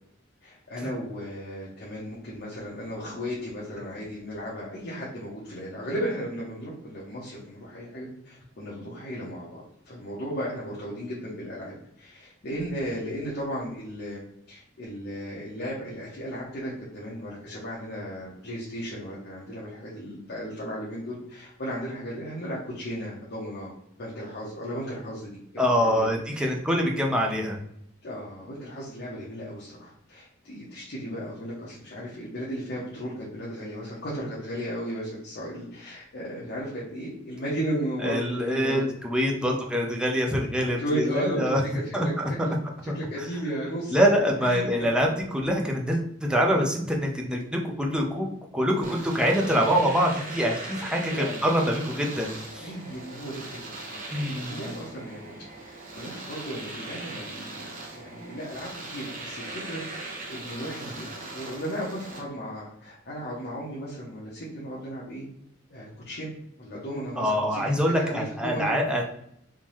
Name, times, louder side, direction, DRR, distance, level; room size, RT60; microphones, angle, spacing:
voice 1, 0.4-26.1 26.3-26.5 28.0-38.8 39.4-39.6 40.8-42.5 42.8-44.0 44.4-44.9 46.5-46.7 48.6-48.9 49.4-49.6 51.1-51.4 52.6-61.1 61.3-65.2 65.7-66.3 66.6-68.7, equal, 55° left, -6 dB, 1.0 m, -35 dB
voice 2, 25.6-27.6 38.0-41.6 41.9-42.1 42.9-43.0 43.9-48.3 48.5-51.1 51.4-52.7 54.1-54.8 67.2-69.0, equal, 5° right, 0 dB, 0.6 m, -25 dB
Domestic sounds home sounds, 48.8-62.2, right 2 dB, 45° right, 0.9 m, -40 dB
3.6 x 2.7 x 3.0 m, 0.73 s
head